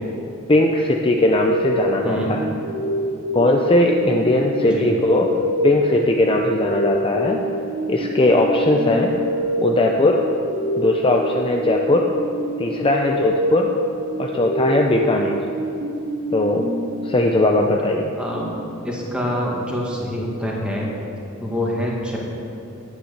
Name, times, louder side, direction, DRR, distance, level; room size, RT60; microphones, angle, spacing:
voice 1, 0.5-2.5 3.3-5.3 5.6-7.4 7.9-9.1 9.6-10.2 10.8-12.1 12.6-13.7 14.2-15.4 16.3-16.7 17.0-18.1, left 1 dB, 25° left, 1 dB, 0.6 m, -19 dB
sound 1, 1.2-17.5, equal, 85° right, 2.1 m, -27 dB
voice 2, 4.6-4.9 18.2-18.5 18.8-20.9 21.4-22.2, equal, 5° right, -3 dB, 2.0 m, -25 dB
10.0 x 8.9 x 6.7 m, 2.7 s
head